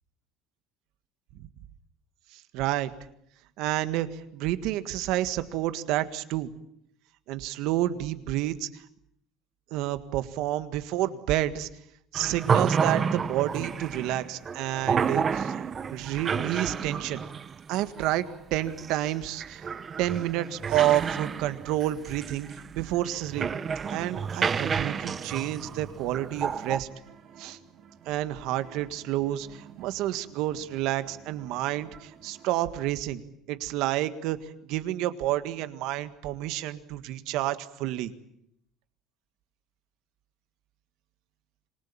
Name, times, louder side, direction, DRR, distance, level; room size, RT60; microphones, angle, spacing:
voice 1, 2.3-2.9 3.6-6.5 7.3-8.8 9.7-11.7 12.1-15.6 15.9-17.2 17.7-19.6 20.0-22.5 22.7-23.5 23.9-26.9 27.4-27.6 28.1-33.2 33.5-38.1, right 14 dB, 70° right, 12 dB, 1.7 m, -29 dB
sound 1, 12.1-26.8, right 6 dB, 30° right, 1.1 m, -30 dB
sound 2, 24.9-32.8, right 7 dB, 50° right, 3.0 m, -53 dB
26.5 x 20.0 x 8.9 m, 0.76 s
cardioid pair, 120°, 0 cm